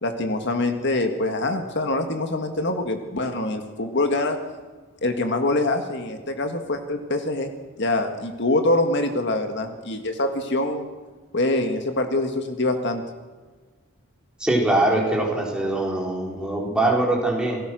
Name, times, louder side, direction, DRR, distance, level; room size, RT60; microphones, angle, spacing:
voice 1, 0.0-4.4 5.0-7.5 7.8-10.9 11.3-13.0, left 2 dB, 55° left, 6 dB, 1.9 m, -24 dB
voice 2, 14.4-17.6, right 2 dB, 5° right, -2 dB, 4.5 m, -22 dB
28.5 x 19.5 x 6.4 m, 1.3 s
head